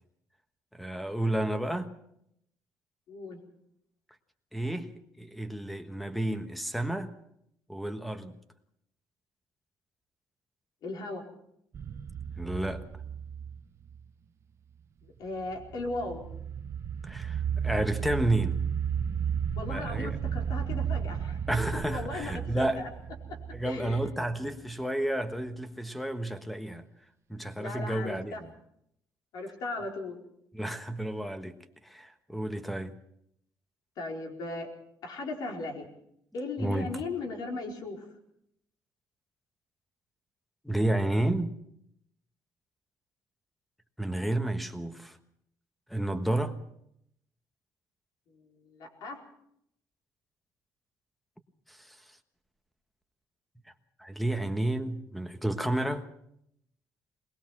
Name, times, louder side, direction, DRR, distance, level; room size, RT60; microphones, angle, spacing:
voice 1, 0.7-1.9 4.5-7.1 7.7-8.4 12.4-12.8 17.0-18.6 19.7-20.2 21.5-22.8 23.5-26.9 27.3-28.5 30.5-31.5 31.8-32.9 36.6-37.0 40.6-41.6 44.0-45.2 45.9-46.6 51.7-52.0 54.0-56.1, right 1 dB, ahead, 1.3 m, -31 dB
voice 2, 3.1-3.4 10.8-11.2 15.2-16.2 19.6-21.4 21.9-22.9 23.3-23.4 23.6-24.0 27.6-28.4 29.3-30.2 34.0-34.7 35.0-35.9 36.3-38.0 48.3-49.2, left 2 dB, 70° left, 4.5 m, -37 dB
sound 1, 11.7-14.0 15.4-24.3, right 8 dB, 40° right, 0.9 m, -34 dB
22.0 x 20.0 x 6.1 m
cardioid pair, 145°, 7 cm